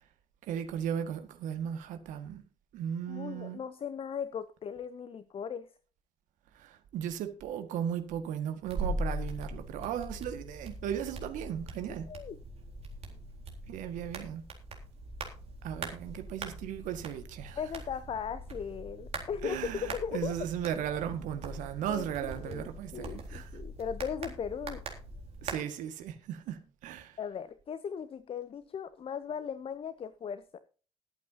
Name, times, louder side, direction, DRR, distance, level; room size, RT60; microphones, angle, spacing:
voice 1, 0.5-2.4 2.7-3.6 6.5-12.1 13.7-14.4 15.6-17.6 19.4-23.6 25.4-27.2, right 9 dB, 60° right, 1.8 m, -36 dB
voice 2, 3.1-5.7 12.1-12.4 17.6-20.3 21.9-24.8 27.2-30.6, left 7 dB, 40° left, 0.8 m, -38 dB
sound 1, 8.7-25.6, right 1 dB, 45° right, 3.9 m, -41 dB
21.5 x 8.5 x 2.8 m
figure-of-eight pair, 50°, 15 cm